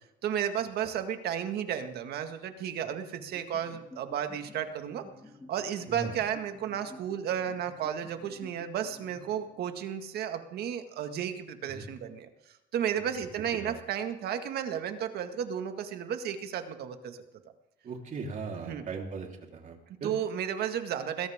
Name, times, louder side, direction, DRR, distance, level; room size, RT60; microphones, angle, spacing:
voice 1, 0.2-5.1 5.5-12.3 12.7-17.2 18.6-18.8 20.0-21.3, right 9 dB, 70° right, 7 dB, 1.9 m, -33 dB
sound 1, 3.2-9.9, left 2 dB, 10° left, 2.8 m, -52 dB
voice 2, 17.8-20.1, right 4 dB, 50° right, 1 dB, 3.9 m, -39 dB
22.0 x 16.5 x 3.7 m, 0.92 s
cardioid pair, 110°, 17 cm